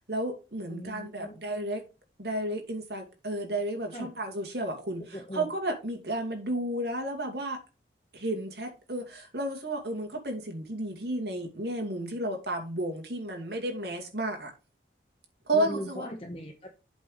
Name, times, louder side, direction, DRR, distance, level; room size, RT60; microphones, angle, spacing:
voice 1, 0.0-1.8 2.2-7.6 8.1-14.5 15.5-16.1, right 1 dB, 65° right, 2.4 m, -32 dB
voice 2, 0.7-1.4 3.9-4.1 5.1-5.5 15.5-16.7, equal, 30° left, 1.0 m, -38 dB
8.1 x 4.6 x 5.0 m
head